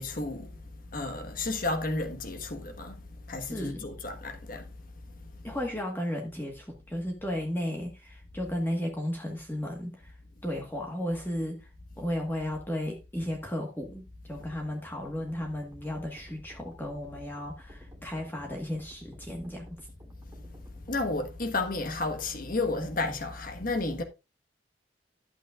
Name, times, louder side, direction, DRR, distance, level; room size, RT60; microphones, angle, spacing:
voice 1, 0.0-4.7 20.4-24.0, left 2 dB, 50° left, 1.3 m, -32 dB
voice 2, 3.5-3.9 5.4-10.1 10.4-11.7 12.0-19.8, left 1 dB, 10° left, 1.4 m, -34 dB
sound 1, 14.3-21.3, equal, 15° right, 1.9 m, -53 dB
11.5 x 8.1 x 2.4 m
head